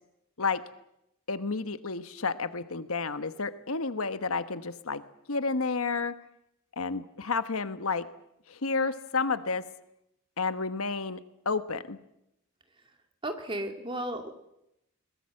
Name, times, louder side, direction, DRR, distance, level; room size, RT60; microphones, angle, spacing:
voice 1, 1.3-5.0 5.3-6.1 6.8-8.1 8.5-9.6 10.4-11.2 11.4-12.0, left 4 dB, 75° left, 11 dB, 1.2 m, -30 dB
voice 2, 13.2-14.3, right 1 dB, 25° right, 5 dB, 2.3 m, -34 dB
22.5 x 20.0 x 7.7 m, 0.82 s
head